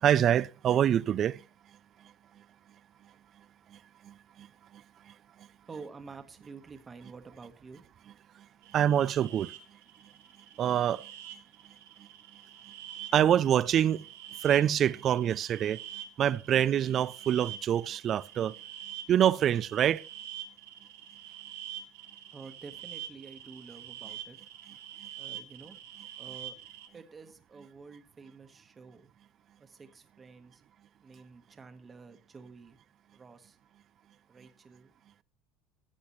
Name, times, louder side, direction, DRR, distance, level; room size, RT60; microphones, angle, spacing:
voice 1, 0.0-1.4 4.0-4.5 8.7-9.5 10.6-11.1 13.1-14.0 14.4-15.8 16.2-18.5 19.1-20.0, right 10 dB, 40° right, 0.4 m, -25 dB
voice 2, 5.7-7.8 22.3-24.4 25.2-25.8 26.2-26.6 26.9-29.1 29.6-30.6 31.0-32.8 33.1-33.6 34.3-34.9, right 4 dB, 20° right, 1.3 m, -49 dB
sound 1, 8.6-26.9, right 10 dB, 90° right, 1.3 m, -46 dB
14.0 x 8.5 x 3.1 m
supercardioid pair, 130°, 0 cm